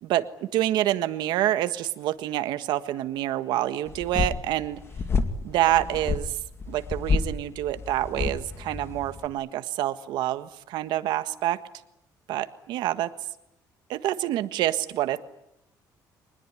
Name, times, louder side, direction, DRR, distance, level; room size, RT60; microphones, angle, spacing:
voice 1, 0.0-4.8 5.4-6.4 6.7-11.6 12.3-13.1 13.9-15.2, right 13 dB, 90° right, 11 dB, 1.5 m, -27 dB
sound 1, 3.9-9.3, left 4 dB, 35° left, 2.1 m, -30 dB
25.0 x 20.5 x 9.9 m, 0.81 s
cardioid pair, 135°, 7 cm